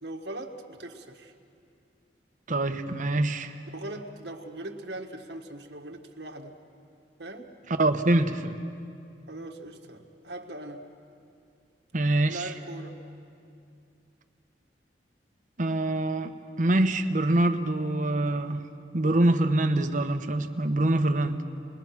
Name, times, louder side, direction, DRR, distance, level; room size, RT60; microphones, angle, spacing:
voice 1, 0.0-1.3 3.7-6.6 7.2-7.6 9.3-10.9 12.3-13.0, right 1 dB, 75° right, 3 dB, 1.7 m, -40 dB
voice 2, 2.5-3.5 7.8-8.6 11.9-12.5 15.6-18.6 18.9-21.4, right 1 dB, 45° right, 7 dB, 1.0 m, -25 dB
29.5 x 21.5 x 5.9 m, 2.5 s
head